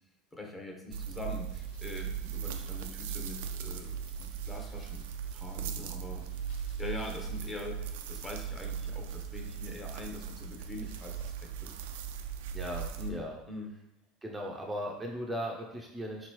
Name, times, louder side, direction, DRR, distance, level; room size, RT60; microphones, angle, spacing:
voice 1, 0.3-5.0 5.3-6.3 6.8-11.7 13.0-13.7, left 2 dB, 15° left, 1 dB, 0.8 m, -43 dB
sound 1, 0.9-13.1, right 8 dB, 85° right, 0.3 m, -38 dB
sound 2, 1.4-7.7, equal, 75° left, 0.9 m, -58 dB
voice 2, 12.5-13.4 14.2-16.3, equal, 15° right, -1 dB, 0.5 m, -37 dB
3.7 x 2.9 x 3.1 m, 0.87 s
supercardioid pair, 100°, 0 cm